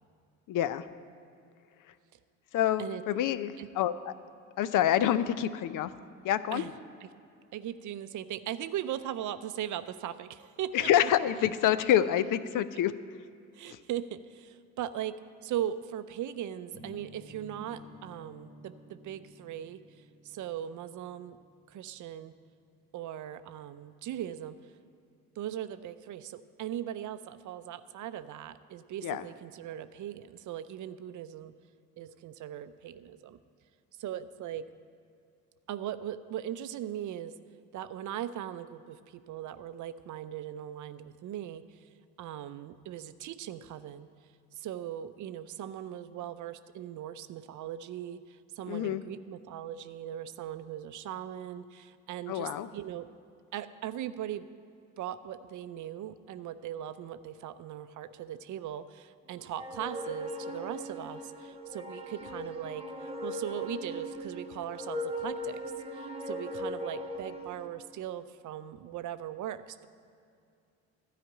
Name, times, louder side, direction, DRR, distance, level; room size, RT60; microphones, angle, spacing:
voice 1, 0.5-0.9 2.5-4.1 4.6-5.9 6.2-6.6 10.7-12.9 13.7-13.8 29.0-29.3 48.7-49.0 52.3-52.7, left 11 dB, 55° left, 14 dB, 0.6 m, -27 dB
voice 2, 7.5-10.9 13.5-15.1 15.4-21.4 21.7-22.3 22.9-24.6 25.4-31.5 32.0-33.4 34.0-34.6 35.7-37.3 37.7-41.8 42.2-44.1 44.5-53.1 53.5-54.5 55.0-65.6 65.9-69.9, right 11 dB, 50° right, 12 dB, 0.6 m, -39 dB
sound 1, 16.7-22.6, left 1 dB, 85° left, 2.8 m, -53 dB
sound 2, 59.5-67.7, equal, 15° right, 1.1 m, -39 dB
12.5 x 5.0 x 8.9 m, 2.5 s
hypercardioid pair, 65°, 38 cm